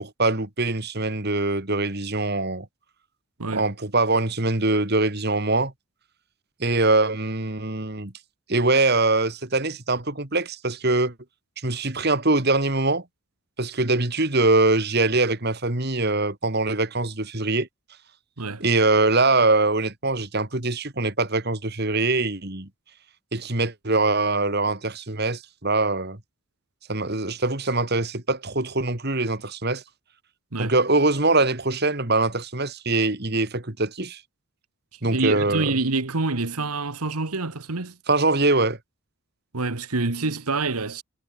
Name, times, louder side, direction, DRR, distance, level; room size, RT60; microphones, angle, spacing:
voice 1, 0.0-2.7 3.5-5.7 6.6-8.1 8.5-11.1 11.6-13.0 13.6-17.7 18.6-22.7 23.3-26.2 26.9-29.8 30.6-34.2 35.0-35.7 38.1-38.8, right 2 dB, 45° right, 2.3 m, -23 dB
voice 2, 35.0-38.0 39.5-41.0, right 3 dB, 90° right, 1.7 m, -27 dB
head